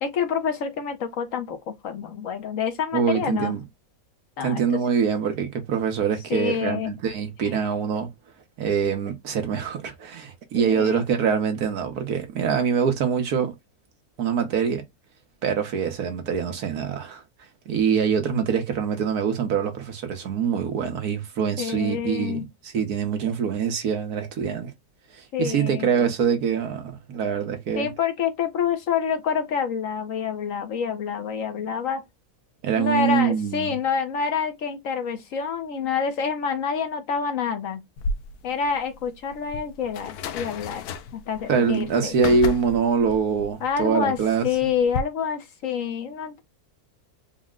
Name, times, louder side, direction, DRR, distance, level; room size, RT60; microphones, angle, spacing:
voice 1, 0.0-3.5 4.4-4.8 6.3-6.9 10.5-11.0 21.6-22.5 25.3-25.9 27.7-32.0 32.8-37.8 38.4-40.8 41.1-42.1 43.6-46.4, left 7 dB, 65° left, 1.1 m, -27 dB
voice 2, 2.9-3.6 4.4-8.1 8.6-13.5 14.2-14.8 15.4-17.2 17.7-22.4 22.7-24.7 25.4-27.9 32.6-33.7 41.5-44.5, right 6 dB, 75° right, 1.4 m, -24 dB
sound 1, 38.0-45.0, left 3 dB, 85° left, 1.1 m, -34 dB
4.1 x 2.1 x 3.5 m
omnidirectional pair, 1.6 m